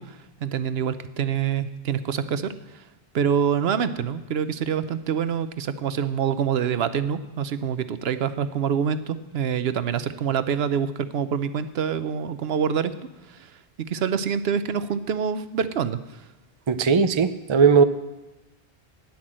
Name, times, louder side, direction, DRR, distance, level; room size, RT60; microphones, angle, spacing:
voice 1, 0.0-2.8 3.1-12.9 13.3-13.5 13.9-16.2, right 7 dB, 80° right, 12 dB, 0.9 m, -26 dB
voice 2, 16.7-17.8, right 5 dB, 35° right, 11 dB, 0.5 m, -18 dB
10.5 x 9.6 x 7.5 m, 1.1 s
omnidirectional pair, 1.0 m